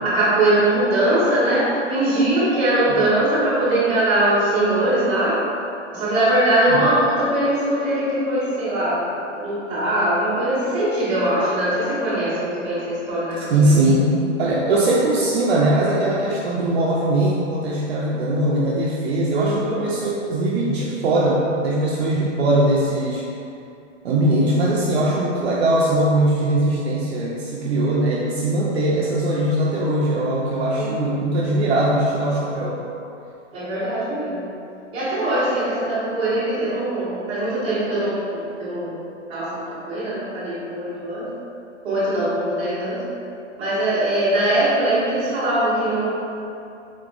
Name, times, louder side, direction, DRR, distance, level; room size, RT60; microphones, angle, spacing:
voice 1, 0.0-5.4 5.9-9.1 9.3-14.2 19.4-19.8 30.7-30.9 33.5-34.4 34.9-38.2 38.6-39.0 39.3-39.5 39.9-41.3 41.8-43.0 43.6-46.2, right 1 dB, 15° right, -13 dB, 1.1 m, -21 dB
voice 2, 13.4-23.2 24.0-32.8, right 1 dB, 55° right, -4 dB, 0.5 m, -20 dB
3.9 x 3.2 x 2.4 m, 2.6 s
hypercardioid pair, 165°, 38 cm